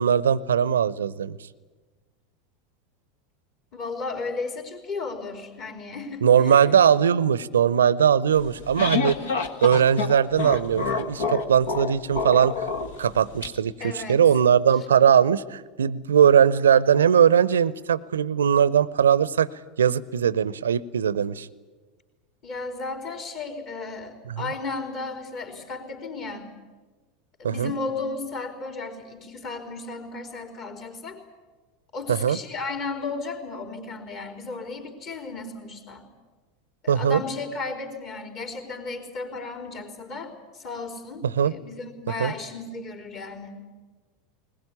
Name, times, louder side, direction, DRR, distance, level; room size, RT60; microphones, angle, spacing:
voice 1, 0.0-1.4 6.2-9.2 9.6-12.6 13.0-19.5 19.8-21.5 24.3-24.4 27.4-27.7 32.1-32.4 36.9-37.2 41.4-41.5 42.2-42.3, right 8 dB, 75° right, 21 dB, 0.7 m, -20 dB
voice 2, 3.7-6.9 9.1-9.4 13.8-14.2 22.4-26.5 27.4-31.2 31.9-36.1 36.8-43.6, left 3 dB, 45° left, 4 dB, 4.3 m, -34 dB
sound 1, 8.4-13.5, left 5 dB, 65° left, 1.6 m, -28 dB
20.5 x 20.5 x 9.9 m, 1.3 s
figure-of-eight pair, 80°, 0 cm